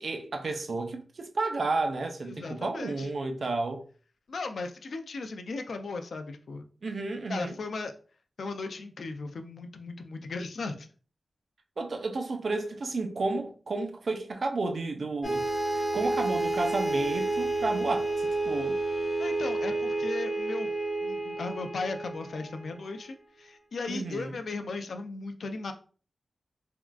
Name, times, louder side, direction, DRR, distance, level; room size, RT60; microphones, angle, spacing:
voice 1, 0.0-3.8 6.8-7.6 11.8-15.5 15.7-18.8 23.9-24.4, right 3 dB, 60° right, 0.4 m, -32 dB
voice 2, 2.3-3.1 4.3-6.7 7.3-7.9 8.4-10.9 19.2-20.7 21.0-25.7, left 3 dB, 80° left, 0.3 m, -37 dB
sound 1, 15.2-23.0, right 2 dB, 40° left, 1.2 m, -30 dB
3.5 x 2.4 x 2.2 m
wide cardioid pair, 135°, 0 cm